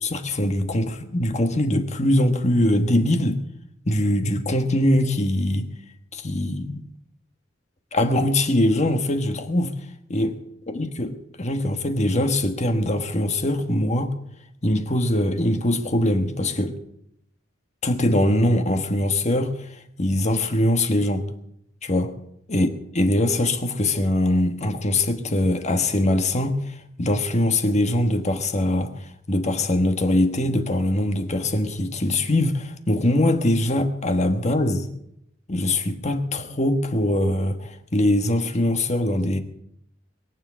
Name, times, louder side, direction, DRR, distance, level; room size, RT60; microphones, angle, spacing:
voice 1, 0.0-3.4 3.8-5.7 6.1-6.8 7.9-9.7 10.1-10.4 10.7-14.1 14.6-16.7 17.8-21.3 21.8-22.1 22.5-22.7 22.9-34.9 35.5-39.4, left 1 dB, 35° left, 7 dB, 1.3 m, -22 dB
22.0 x 7.5 x 7.9 m, 0.77 s
head